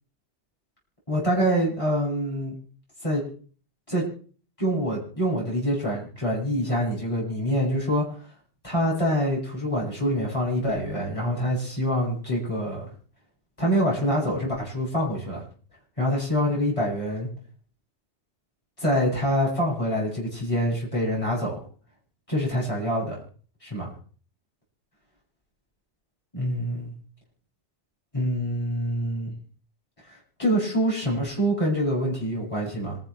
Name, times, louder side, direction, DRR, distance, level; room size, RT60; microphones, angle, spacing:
voice 1, 1.1-2.5 3.0-3.2 3.9-4.1 4.6-8.1 8.6-12.9 13.6-15.4 16.0-17.3 18.8-21.5 22.3-23.2 23.6-23.9 26.3-26.9 28.1-29.3 30.4-33.0, equal, 30° left, -5 dB, 7.9 m, -25 dB
26.5 x 11.5 x 3.3 m, 0.42 s
omnidirectional pair, 1.2 m